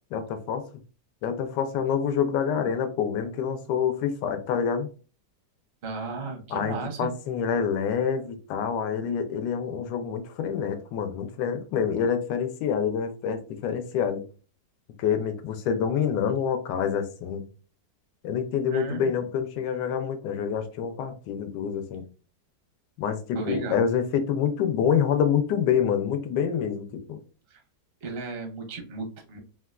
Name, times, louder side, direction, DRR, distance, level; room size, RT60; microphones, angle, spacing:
voice 1, 0.1-0.6 1.2-4.9 6.5-14.2 15.0-17.4 18.2-22.0 23.0-27.2, left 7 dB, 85° left, 7 dB, 1.2 m, -27 dB
voice 2, 5.8-7.2 18.7-19.1 23.3-23.8 27.5-27.6 28.0-29.4, right 4 dB, 60° right, 3 dB, 0.6 m, -34 dB
3.3 x 2.2 x 2.3 m, 0.36 s
omnidirectional pair, 1.8 m